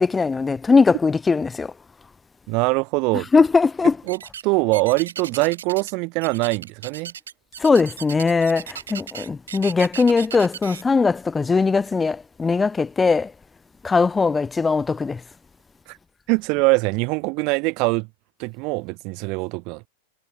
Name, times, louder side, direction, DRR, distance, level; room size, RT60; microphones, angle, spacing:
voice 1, 0.0-1.7 3.3-4.0 7.6-13.3 13.8-15.2, left 4 dB, 15° left, 1.9 m, -20 dB
voice 2, 2.5-3.3 4.1-7.1 15.9-16.0 16.3-18.1 18.4-19.9, right 29 dB, 50° right, 1.0 m, -23 dB
sound 1, 4.1-4.5 4.7-5.9 6.2-10.8, right 8 dB, 90° right, 3.5 m, -36 dB
hypercardioid pair, 120°, 0 cm